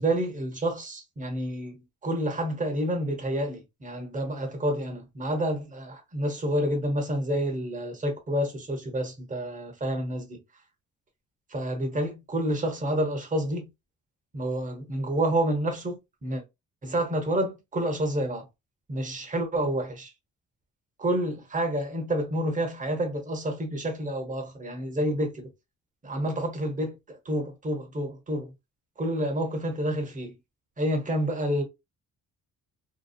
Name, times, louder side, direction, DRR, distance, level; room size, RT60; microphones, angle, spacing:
voice 1, 0.0-10.4 11.5-13.7 14.3-16.4 16.8-18.5 18.9-20.1 21.0-25.5 26.0-28.5 29.0-30.3 30.8-31.6, right 1 dB, 25° right, 1.1 m, -29 dB
2.9 x 2.3 x 2.4 m
cardioid pair, 90°, 30 cm